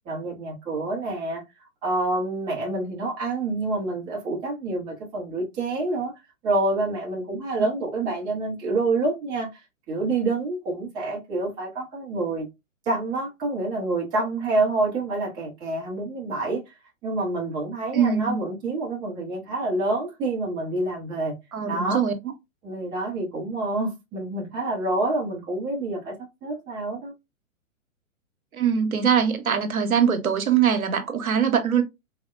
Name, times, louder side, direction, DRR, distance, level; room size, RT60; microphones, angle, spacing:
voice 1, 0.1-1.4 1.8-6.1 6.4-9.6 9.9-12.5 12.9-16.7 17.0-21.4 21.7-22.0 22.6-26.2 26.4-27.1, right 2 dB, 10° right, 0.5 m, -27 dB
voice 2, 17.9-18.4 21.5-22.3 28.5-31.8, right 7 dB, 85° right, 0.7 m, -22 dB
3.8 x 2.0 x 2.3 m
figure-of-eight pair, 120°, 41 cm